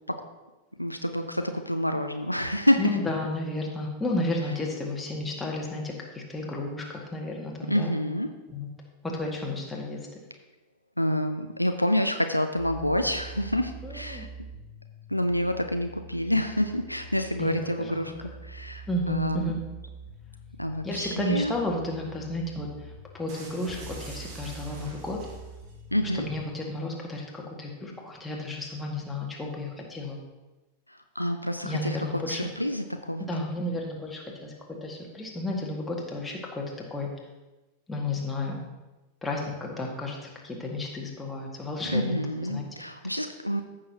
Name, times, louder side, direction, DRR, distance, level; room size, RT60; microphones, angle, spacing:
voice 1, 0.8-3.0 7.7-8.3 11.0-14.3 15.1-19.5 20.6-21.6 25.9-26.3 30.9-33.3 41.9-43.6, equal, 90° left, 6 dB, 0.5 m, -28 dB
voice 2, 2.8-7.9 8.5-8.7 9.0-10.1 13.8-14.3 17.4-18.0 18.9-19.6 20.8-25.2 26.1-30.2 31.6-32.5 33.3-37.1 37.9-38.6 39.2-42.6, left 2 dB, 10° left, -2 dB, 1.9 m, -32 dB
sound 1, 12.6-26.4, right 2 dB, 45° left, 0.9 m, -45 dB
sound 2, 23.3-25.7, right 2 dB, 40° right, 1.7 m, -45 dB
14.5 x 6.4 x 2.8 m, 1.1 s
figure-of-eight pair, 90°, 0 cm